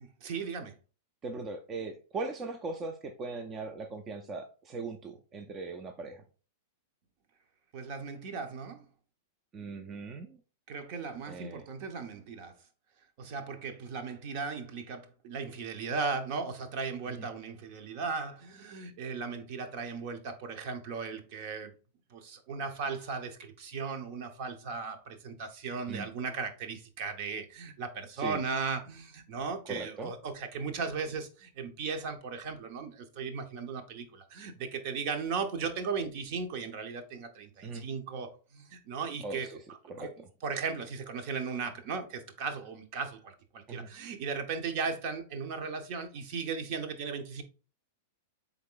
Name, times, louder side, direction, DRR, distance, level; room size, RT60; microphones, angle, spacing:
voice 1, 0.2-0.7 7.7-8.9 10.7-12.5 13.2-21.7 22.1-39.5 39.9-40.1 40.4-47.4, right 5 dB, 50° right, 0.9 m, -37 dB
voice 2, 1.2-6.2 9.5-10.4 11.3-11.6 17.1-17.3 25.9-26.1 28.2-28.4 29.7-30.1 37.6-37.8 39.2-39.6 39.9-40.1 43.7-43.9, right 3 dB, 25° right, 0.5 m, -39 dB
3.8 x 3.6 x 3.8 m
hypercardioid pair, 130°, 0 cm